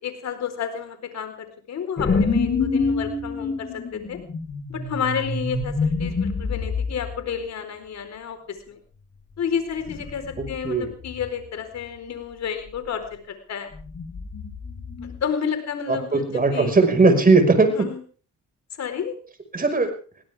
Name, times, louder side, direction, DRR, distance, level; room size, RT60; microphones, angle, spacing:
voice 1, 0.0-4.2 4.7-8.8 9.4-13.7 15.0-16.8 17.7-18.0 18.8-19.2, left 7 dB, 60° left, 8 dB, 4.4 m, -31 dB
sound 1, 2.0-7.2 9.9-10.6 10.8-11.3 13.8-15.2, left 4 dB, 35° left, 4.6 m, -26 dB
voice 2, 15.9-17.7 19.5-19.9, right 3 dB, 30° right, 6 dB, 5.5 m, -18 dB
21.5 x 17.5 x 3.6 m, 0.39 s
cardioid pair, 90°, 30 cm